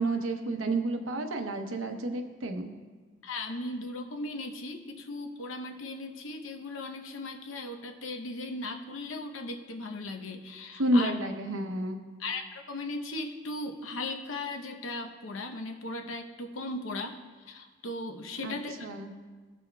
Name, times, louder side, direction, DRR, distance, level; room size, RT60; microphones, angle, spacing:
voice 1, 0.0-2.7 10.8-12.0 18.4-18.6 18.8-19.1, right 1 dB, 90° right, 5 dB, 0.8 m, -30 dB
voice 2, 3.2-11.1 12.2-17.2 17.5-18.9, left 2 dB, 90° left, 5 dB, 0.8 m, -37 dB
15.0 x 6.2 x 2.2 m, 1.4 s
head